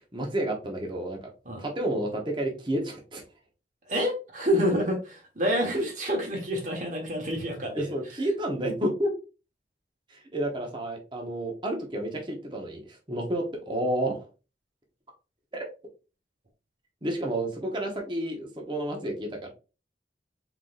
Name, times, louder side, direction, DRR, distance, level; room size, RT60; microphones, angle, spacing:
voice 1, 0.1-1.2 1.6-3.2 7.7-9.1 10.1-14.3 15.5-15.7 17.0-19.5, right 1 dB, 25° right, 1.1 m, -30 dB
voice 2, 3.9-5.0 5.3-7.9, equal, 45° right, 1.5 m, -27 dB
4.6 x 4.0 x 2.5 m
head